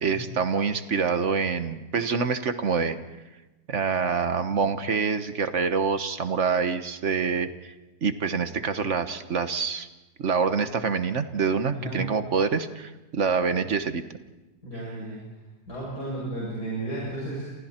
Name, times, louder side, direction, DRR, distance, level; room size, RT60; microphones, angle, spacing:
voice 1, 0.0-3.0 3.7-7.7 8.0-9.9 10.2-14.0, right 5 dB, 50° right, 10 dB, 1.4 m, -26 dB
voice 2, 11.7-12.1 14.6-15.2 15.7-17.5, right 2 dB, 75° left, -6 dB, 8.1 m, -33 dB
29.5 x 28.0 x 4.4 m, 1.1 s
omnidirectional pair, 1.7 m